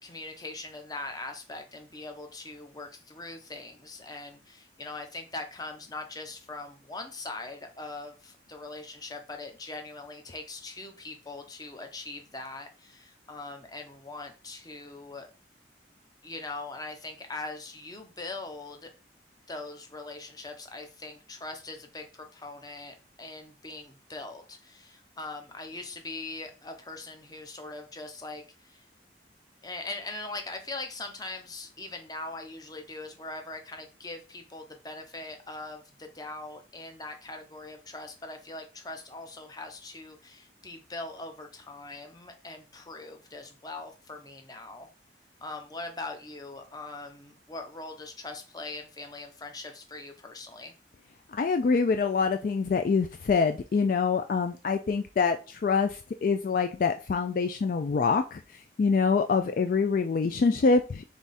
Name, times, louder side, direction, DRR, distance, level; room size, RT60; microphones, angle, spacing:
voice 1, 0.0-15.3 16.2-18.9 19.5-28.8 29.6-44.9 45.4-50.7, left 2 dB, 20° left, 5 dB, 0.7 m, -41 dB
voice 2, 51.3-58.4 58.8-61.0, left 4 dB, 50° left, 7 dB, 0.3 m, -25 dB
3.5 x 3.4 x 4.1 m, 0.33 s
head